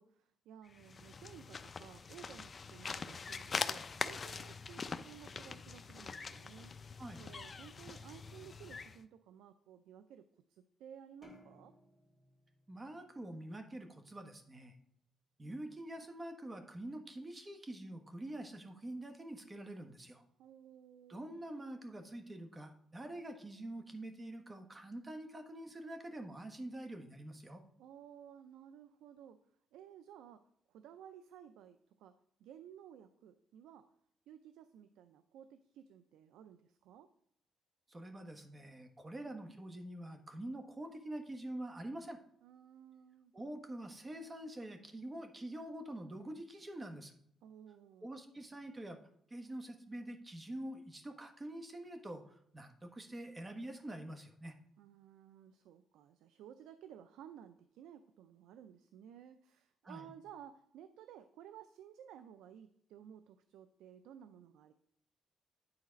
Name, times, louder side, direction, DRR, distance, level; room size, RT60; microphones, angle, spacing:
voice 1, 0.0-11.7 20.4-21.2 27.8-29.4 29.7-30.4 30.7-33.9 34.3-37.1 42.4-43.3 47.4-48.1 54.8-64.7, right 9 dB, 90° right, 11 dB, 0.4 m, -56 dB
sound 1, 0.7-9.0, left 5 dB, 35° left, 0.5 m, -43 dB
voice 2, 7.0-7.3 12.7-14.7 15.4-20.2 21.1-27.6 37.9-42.2 43.3-47.1 48.0-49.0 49.3-54.5 59.8-60.1, right 1 dB, 25° right, 6 dB, 1.3 m, -46 dB
sound 2, 11.2-13.8, equal, ahead, 2.6 m, -62 dB
9.7 x 4.0 x 5.1 m, 0.71 s
cardioid pair, 90°, 0 cm